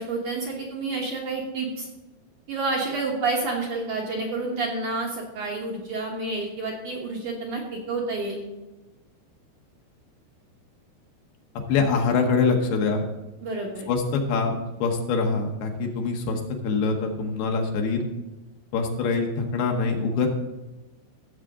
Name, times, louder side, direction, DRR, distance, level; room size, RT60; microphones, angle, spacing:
voice 1, 0.0-1.9 2.5-8.4 13.4-13.9, right 3 dB, 60° right, -2 dB, 2.2 m, -29 dB
voice 2, 11.7-13.0 13.9-14.6 14.8-18.1 18.7-20.3, left 4 dB, 70° left, 2 dB, 2.8 m, -24 dB
16.0 x 7.4 x 3.7 m, 1.1 s
omnidirectional pair, 5.1 m